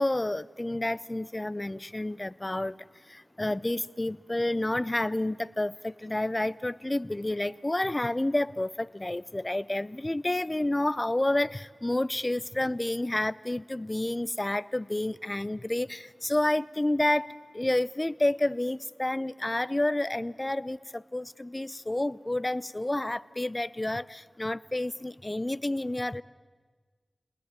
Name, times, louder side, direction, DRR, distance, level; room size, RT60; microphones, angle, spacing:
voice 1, 0.0-2.8 3.1-26.2, left 1 dB, 25° left, 18 dB, 0.7 m, -29 dB
28.0 x 20.0 x 9.1 m, 1.5 s
cardioid pair, 40°, 0 cm